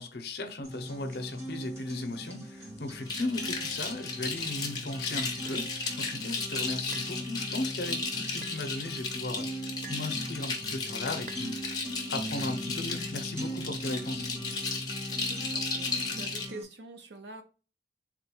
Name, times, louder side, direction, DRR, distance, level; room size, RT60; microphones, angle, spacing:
voice 1, 0.0-11.7 12.1-14.3, left 2 dB, 65° left, 0.6 m, -36 dB
sound 1, 0.6-16.6, equal, 15° right, 1.1 m, -40 dB
sound 2, 3.1-16.5, left 4 dB, 25° left, 0.7 m, -35 dB
sound 3, 5.5-5.6 6.9-7.2 8.4-8.6 9.8-10.1 11.3-11.5, right 7 dB, 45° right, 0.3 m, -47 dB
voice 2, 15.1-17.4, right 2 dB, 75° right, 0.7 m, -45 dB
3.7 x 2.3 x 4.3 m
head